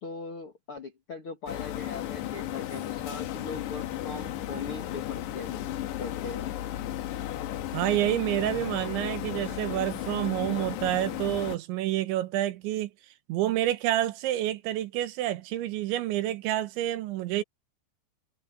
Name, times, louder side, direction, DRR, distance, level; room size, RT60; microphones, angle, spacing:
voice 1, 0.0-5.6 6.0-6.5, left 4 dB, 60° left, 1.4 m, -40 dB
sound 1, 1.5-11.6, left 13 dB, 75° left, 3.4 m, -35 dB
voice 2, 7.7-12.9 13.3-17.4, right 13 dB, 90° right, 3.5 m, -28 dB
omnidirectional pair, 5.1 m